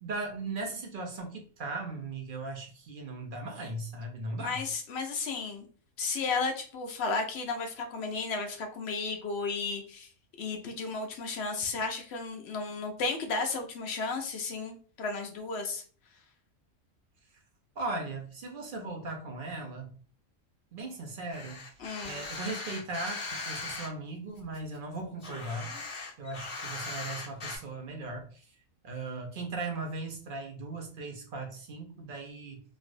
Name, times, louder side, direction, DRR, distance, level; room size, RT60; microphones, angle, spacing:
voice 1, 0.0-4.6 17.8-19.9 20.7-21.6 22.0-25.7 26.2-28.5 28.8-32.6, right 2 dB, 55° right, 2 dB, 0.7 m, -38 dB
voice 2, 4.4-5.7 6.0-10.1 10.4-15.8 21.8-22.2, left 4 dB, 65° left, 3 dB, 0.8 m, -33 dB
sound 1, 21.3-23.9 24.4-27.6, left 3 dB, 45° left, 1.2 m, -39 dB
3.1 x 2.5 x 2.5 m, 0.42 s
omnidirectional pair, 1.3 m